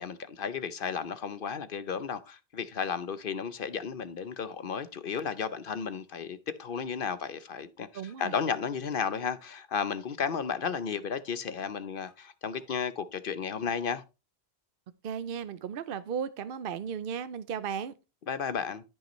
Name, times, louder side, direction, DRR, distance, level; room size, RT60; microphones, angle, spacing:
voice 1, 0.0-7.9 8.2-14.0 18.3-18.8, left 6 dB, 60° left, 0.9 m, -33 dB
sound 1, 7.6-8.3 8.6-9.6 9.9-11.0 11.3-12.3 12.6-12.7, left 2 dB, 45° right, 5.7 m, -62 dB
voice 2, 7.9-8.3 15.0-17.9, right 7 dB, 60° right, 0.7 m, -35 dB
14.5 x 5.5 x 3.1 m
omnidirectional pair, 1.1 m